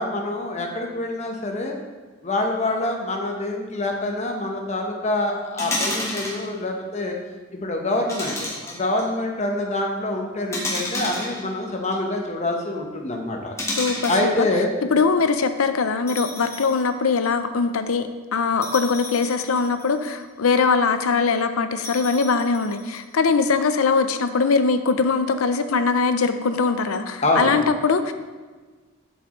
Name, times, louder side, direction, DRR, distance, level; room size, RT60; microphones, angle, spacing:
voice 1, 0.0-1.7 2.2-7.2 7.5-13.5 14.1-14.7 27.2-27.6, left 2 dB, 30° left, 1 dB, 1.0 m, -25 dB
sound 1, 5.6-6.4 8.1-9.0 10.5-12.0 13.6-14.3 16.1-16.8 17.2-17.3 18.6-20.2 21.8-23.0, left 1 dB, 15° left, 1.2 m, -30 dB
voice 2, 13.8-14.5 14.9-28.1, left 4 dB, 80° left, 9 dB, 0.5 m, -21 dB
7.8 x 7.3 x 3.1 m, 1.4 s
head